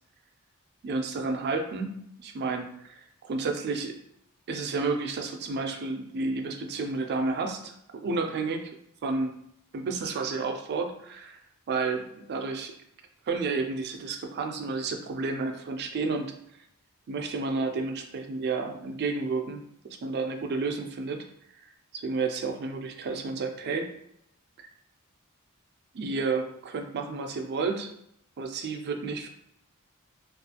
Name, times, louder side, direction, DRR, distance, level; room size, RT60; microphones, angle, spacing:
voice 1, 0.8-4.0 4.5-8.7 9.0-9.3 9.7-11.4 11.7-12.7 13.3-16.3 17.1-19.6 20.0-21.2 21.6-23.9 24.6-24.7 25.9-27.9 28.4-29.3, right 4 dB, 50° right, 4 dB, 0.4 m, -31 dB
2.5 x 2.3 x 2.8 m, 0.72 s
head